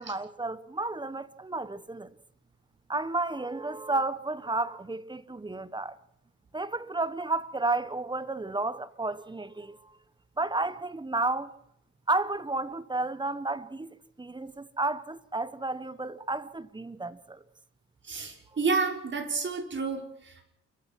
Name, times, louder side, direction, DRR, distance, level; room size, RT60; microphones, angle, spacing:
voice 1, 0.0-2.1 2.9-6.0 6.5-9.8 10.4-11.5 12.1-17.4, right 2 dB, 15° right, 1.3 m, -32 dB
voice 2, 18.0-20.4, right 4 dB, 40° right, 5.8 m, -30 dB
29.0 x 15.0 x 6.2 m
cardioid pair, 90°, 30 cm